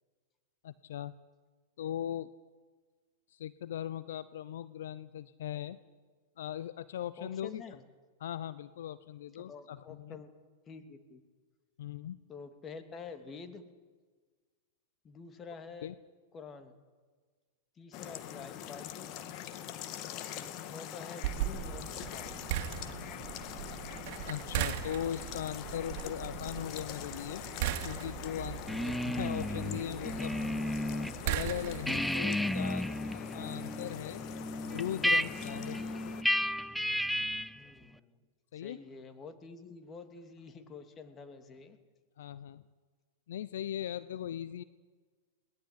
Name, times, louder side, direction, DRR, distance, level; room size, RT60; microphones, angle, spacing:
voice 1, 0.6-1.1 1.8-2.3 3.3-5.8 6.4-7.6 8.2-10.2 11.8-12.2 15.8-15.9 24.3-27.4 27.8-30.4 31.2-32.9 33.1-34.2 34.6-35.8 38.5-38.8 42.2-42.6 43.3-44.6, left 10 dB, 70° left, 17 dB, 0.8 m, -39 dB
voice 2, 7.2-7.8 9.5-10.3 10.7-11.2 12.3-13.6 15.0-15.9 16.3-16.8 17.8-19.1 20.3-22.4 37.5-38.1 38.5-41.8, left 5 dB, 25° left, 9 dB, 3.0 m, -48 dB
sound 1, 17.9-36.2, left 10 dB, 45° left, 2.1 m, -44 dB
sound 2, 21.2-32.1, right 12 dB, 55° right, 2.7 m, -39 dB
sound 3, 28.7-31.2 31.5-37.6, left 1 dB, ahead, 0.7 m, -33 dB
21.5 x 19.5 x 9.9 m, 1.4 s
hypercardioid pair, 110°, 0 cm